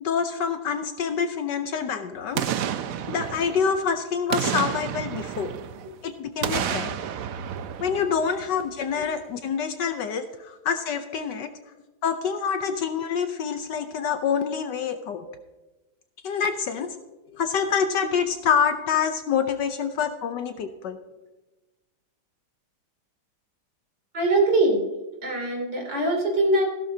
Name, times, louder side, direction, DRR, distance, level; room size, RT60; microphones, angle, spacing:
voice 1, 0.0-2.4 3.1-5.5 6.0-7.0 7.8-11.5 12.0-15.3 16.2-16.9 17.3-21.0, left 6 dB, 65° left, 8 dB, 1.2 m, -26 dB
Boom, 2.3-3.9 4.3-5.9 6.4-8.7 9.0-9.1, right 9 dB, 85° right, 0.7 m, -30 dB
voice 2, 24.1-24.8 25.2-26.6, right 2 dB, 60° right, 0 dB, 3.7 m, -22 dB
16.0 x 11.5 x 2.8 m, 1.1 s
omnidirectional pair, 2.2 m